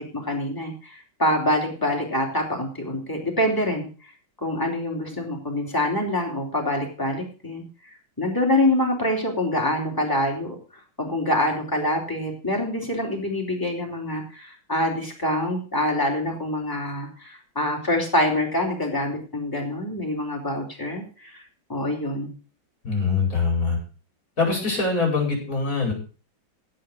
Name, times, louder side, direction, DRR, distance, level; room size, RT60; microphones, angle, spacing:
voice 1, 0.0-3.9 4.4-7.6 8.2-10.6 11.0-21.4 21.7-22.3, left 1 dB, 10° left, -1 dB, 3.6 m, -25 dB
voice 2, 22.8-23.8 24.4-25.9, left 4 dB, 45° left, 1 dB, 5.6 m, -23 dB
16.5 x 5.8 x 6.3 m, 0.37 s
omnidirectional pair, 2.1 m